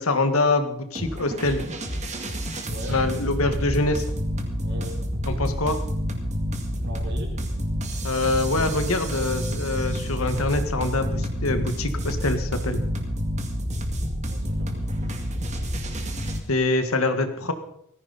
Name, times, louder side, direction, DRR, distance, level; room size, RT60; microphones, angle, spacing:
voice 1, 0.0-1.6 2.9-4.0 5.3-5.8 8.0-12.8 16.5-17.5, left 2 dB, 75° left, 8 dB, 1.8 m, -24 dB
sound 1, 1.0-16.4, equal, 35° right, 2.1 m, -28 dB
voice 2, 4.6-5.0 6.7-7.4 14.2-14.8 16.7-17.0, right 1 dB, 50° right, 1 dB, 4.0 m, -40 dB
19.0 x 15.0 x 4.2 m, 0.73 s
head